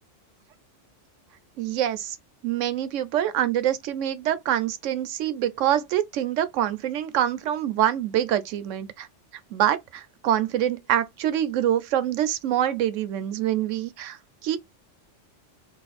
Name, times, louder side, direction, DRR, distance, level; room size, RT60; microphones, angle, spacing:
voice 1, 1.6-2.2 2.4-9.1 9.5-14.2 14.4-14.6, right 11 dB, 85° right, 0.9 m, -25 dB
3.2 x 2.4 x 4.0 m
omnidirectional pair, 1.3 m